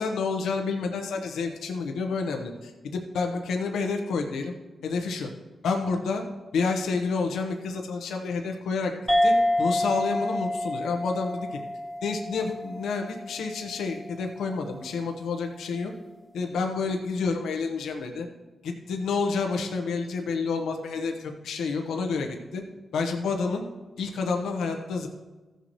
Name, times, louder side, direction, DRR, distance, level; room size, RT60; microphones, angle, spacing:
voice 1, 0.0-4.5 4.8-5.3 5.6-6.2 6.5-8.9 9.2-11.6 12.0-15.9 16.3-18.3 18.6-22.6 22.9-23.6 24.0-25.1, left 4 dB, 85° left, 3 dB, 1.0 m, -29 dB
sound 1, 9.1-14.0, left 1 dB, 10° right, 1.4 m, -27 dB
15.0 x 6.8 x 3.1 m, 1.2 s
cardioid pair, 55°, 0 cm